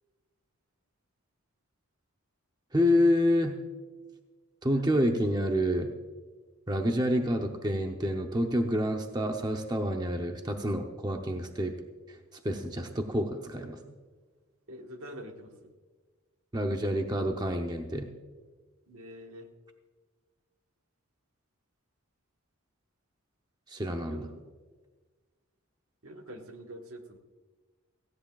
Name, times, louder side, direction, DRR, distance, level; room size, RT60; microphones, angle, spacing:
voice 1, 2.7-3.6 4.6-5.9 6.7-11.7 12.4-13.8 16.5-18.1 23.7-24.3, equal, 20° right, 4 dB, 0.7 m, -28 dB
voice 2, 14.7-15.7 18.9-19.5 24.1-24.3 26.0-27.2, equal, 70° right, 4 dB, 1.4 m, -45 dB
17.5 x 16.0 x 2.4 m, 1.4 s
head